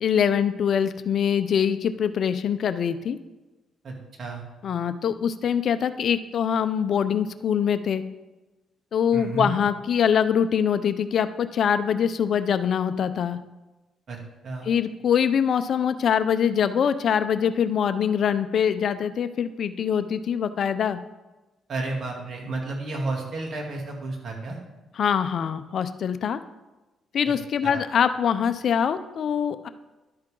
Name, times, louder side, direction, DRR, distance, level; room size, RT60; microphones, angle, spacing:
voice 1, 0.0-3.2 4.6-8.0 8.9-13.4 14.6-21.0 25.0-26.4 27.1-29.7, left 8 dB, 60° left, 11 dB, 0.6 m, -23 dB
voice 2, 3.8-4.4 9.1-9.5 14.1-14.2 14.4-14.7 21.7-24.6 27.3-27.4 27.6-27.8, right 3 dB, 55° right, 0 dB, 2.7 m, -32 dB
11.5 x 8.7 x 3.8 m, 1.1 s
cardioid pair, 90°, 0 cm